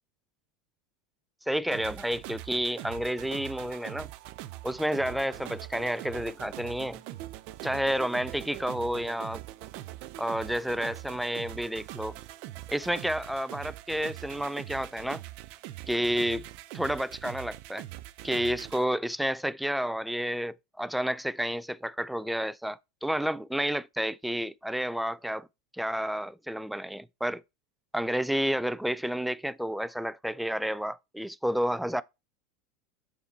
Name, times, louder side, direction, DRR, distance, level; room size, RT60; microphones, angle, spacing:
voice 1, 1.5-4.1 4.6-7.0 7.6-9.4 10.2-12.2 12.7-15.2 15.9-16.5 16.7-17.8 18.2-25.5 25.7-27.4 27.9-32.0, equal, ahead, 0.3 m, -30 dB
sound 1, 1.7-18.8, right 15 dB, 55° right, 0.6 m, -43 dB
6.9 x 4.1 x 4.1 m
hypercardioid pair, 95°, 2 cm